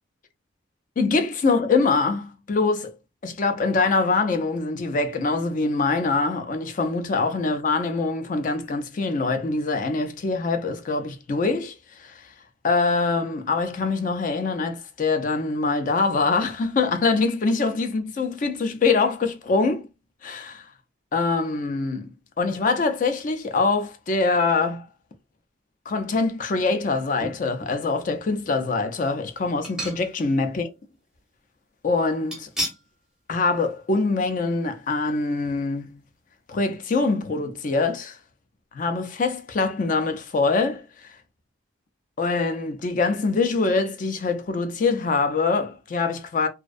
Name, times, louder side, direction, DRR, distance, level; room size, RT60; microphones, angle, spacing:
voice 1, 1.0-2.9 3.2-12.3 12.6-19.9 20.2-20.7 21.1-22.1 22.4-24.9 25.9-30.7 31.8-32.5 33.3-35.9 36.5-38.2 38.7-40.8 42.2-46.5, left 3 dB, 40° left, 0.4 m, -24 dB
sound 1, 27.2-27.8 28.3-28.4 29.6-30.4 30.7-30.8 32.3-32.9 33.3-33.5 33.8-33.9, equal, 5° right, 0.6 m, -33 dB
2.5 x 2.1 x 2.4 m
head